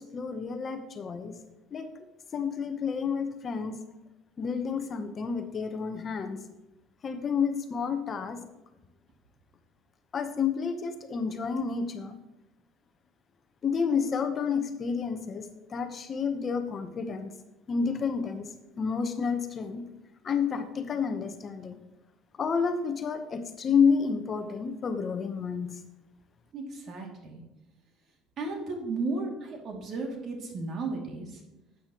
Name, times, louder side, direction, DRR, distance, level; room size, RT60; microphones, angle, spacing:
voice 1, 0.0-1.4 1.7-1.9 2.3-3.8 4.4-6.4 7.0-8.4 10.1-12.2 13.6-17.3 17.7-18.5 18.8-19.8 20.2-21.8 22.4-25.7, left 6 dB, 35° left, 8 dB, 1.0 m, -30 dB
voice 2, 26.5-27.4 28.4-31.4, right 3 dB, 50° right, 1 dB, 2.5 m, -34 dB
12.0 x 8.6 x 3.0 m, 0.94 s
supercardioid pair, 105°, 0 cm